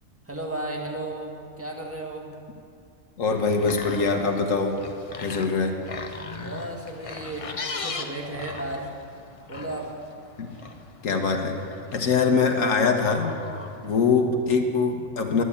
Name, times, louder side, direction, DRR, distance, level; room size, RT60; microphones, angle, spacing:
voice 1, 0.2-2.3 6.4-8.9 9.5-9.9, right 1 dB, 10° right, 0 dB, 1.7 m, -34 dB
voice 2, 3.2-4.8 5.2-5.8 10.4-10.5 11.0-11.6 11.9-13.3 13.8-15.4, left 4 dB, 80° left, 3 dB, 1.6 m, -23 dB
sound 1, 3.3-14.1, left 4 dB, 30° left, 0.7 m, -39 dB
11.5 x 9.7 x 8.6 m, 2.4 s
omnidirectional pair, 1.3 m